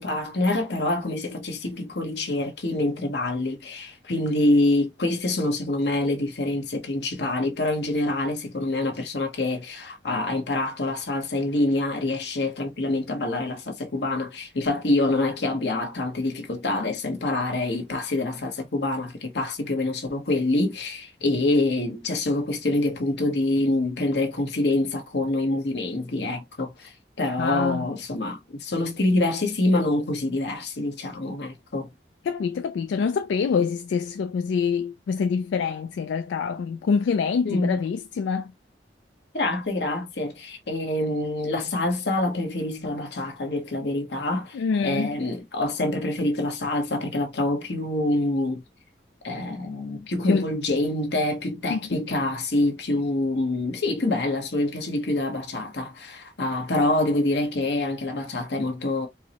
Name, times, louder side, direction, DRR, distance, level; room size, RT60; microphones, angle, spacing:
voice 1, 0.0-31.9 37.4-37.8 39.3-48.6 49.2-59.1, left 2 dB, 70° left, 1.0 m, -26 dB
voice 2, 27.4-27.9 32.2-38.5 44.5-45.2 50.3-50.5 51.7-52.0, left 6 dB, 90° left, 0.3 m, -26 dB
4.5 x 2.0 x 2.8 m
head